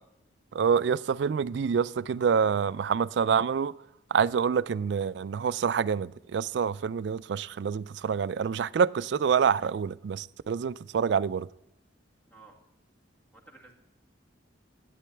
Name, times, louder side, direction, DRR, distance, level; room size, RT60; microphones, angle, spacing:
voice 1, 0.5-3.7 4.1-11.5, right 6 dB, 65° right, 0.3 m, -27 dB
voice 2, 12.3-12.6 13.3-13.7, right 3 dB, 10° left, 2.0 m, -53 dB
11.5 x 9.3 x 3.3 m
head